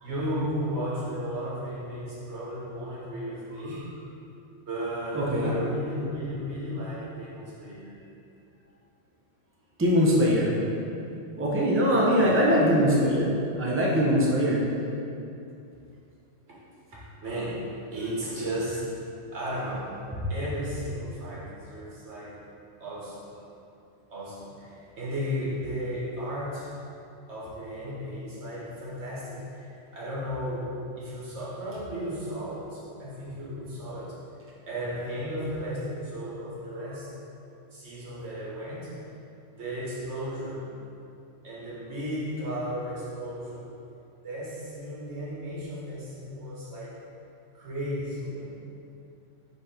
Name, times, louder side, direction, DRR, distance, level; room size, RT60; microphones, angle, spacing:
voice 1, 0.0-3.9 4.7-7.9 12.2-12.7 16.5-16.6 16.9-19.0 19.3-20.0 20.3-22.4 22.8-23.3 24.1-26.7 27.3-34.2 34.6-37.1 37.7-38.9 39.5-40.7 41.4-43.7 44.2-47.0 47.5-48.6, equal, 60° right, -7 dB, 1.8 m, -34 dB
voice 2, 5.1-5.5 9.8-10.6 11.4-13.3 13.5-14.6, equal, 10° right, -5 dB, 0.7 m, -22 dB
5.2 x 3.9 x 5.0 m, 2.6 s
omnidirectional pair, 1.3 m